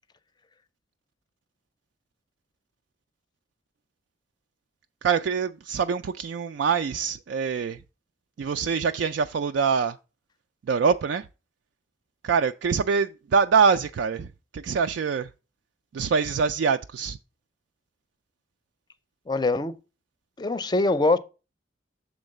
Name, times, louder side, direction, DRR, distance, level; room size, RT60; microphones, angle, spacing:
voice 1, 5.0-7.8 8.4-10.0 10.7-11.2 12.2-14.3 14.5-15.3 15.9-17.2, right 6 dB, 70° right, 0.3 m, -24 dB
voice 2, 19.3-19.7 20.4-21.2, left 2 dB, 25° left, 0.5 m, -23 dB
7.1 x 3.8 x 6.5 m
head